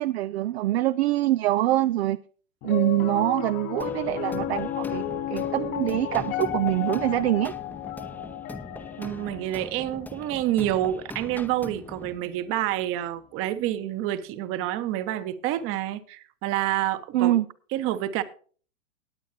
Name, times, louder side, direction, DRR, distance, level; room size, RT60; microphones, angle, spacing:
voice 1, 0.0-2.2 2.6-7.5 17.1-17.5, right 15 dB, 60° right, 0.6 m, -24 dB
Piano, 2.6-13.0, left 11 dB, 35° left, 1.1 m, -34 dB
sound 1, 3.8-12.2, left 2 dB, 5° left, 0.8 m, -42 dB
voice 2, 9.0-17.3 17.7-18.2, right 13 dB, 35° right, 1.1 m, -28 dB
19.0 x 8.4 x 2.8 m
hypercardioid pair, 120°, 37 cm